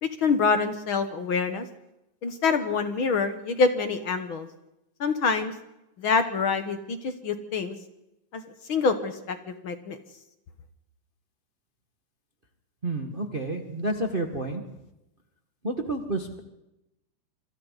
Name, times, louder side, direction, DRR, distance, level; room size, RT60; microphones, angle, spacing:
voice 1, 0.0-1.7 2.2-4.5 5.0-5.5 6.0-7.8 8.3-10.0, left 4 dB, 55° left, 9 dB, 1.7 m, -26 dB
voice 2, 12.8-14.6 15.6-16.4, right 2 dB, 25° right, 4 dB, 1.2 m, -30 dB
27.0 x 25.5 x 4.1 m, 0.90 s
omnidirectional pair, 3.5 m